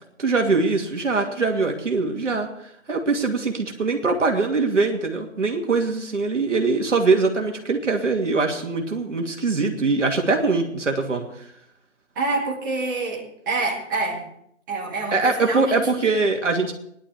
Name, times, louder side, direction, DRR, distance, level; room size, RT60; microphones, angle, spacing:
voice 1, 0.2-2.5 2.9-11.5 15.1-16.7, right 3 dB, 65° right, 2 dB, 2.6 m, -22 dB
voice 2, 12.1-14.2 14.7-16.1, right 3 dB, 15° right, -7 dB, 2.6 m, -27 dB
19.5 x 11.5 x 3.6 m, 0.72 s
figure-of-eight pair, 170°, 40 cm